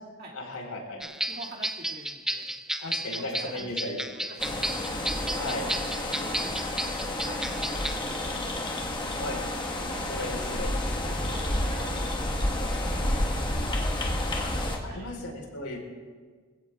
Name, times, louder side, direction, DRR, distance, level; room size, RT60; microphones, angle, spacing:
voice 1, 0.3-1.0 2.8-4.0 5.3-5.6 9.2-9.4 10.1-10.7 11.0-11.3 14.4-14.5 14.8-15.8, left 1 dB, 85° left, 0 dB, 4.7 m, -36 dB
voice 2, 0.9-2.5 3.1-3.7 4.0-5.6 6.2-6.5 7.1-8.5 9.2-9.5 9.8-10.5 11.2-12.0 12.3-14.5 14.8-15.1, right 2 dB, 45° right, -3 dB, 2.4 m, -47 dB
sound 1, 1.0-8.0, right 1 dB, ahead, 0.5 m, -33 dB
sound 2, 4.4-14.8, left 1 dB, 20° left, 1.6 m, -30 dB
25.0 x 16.5 x 2.5 m, 1.5 s
head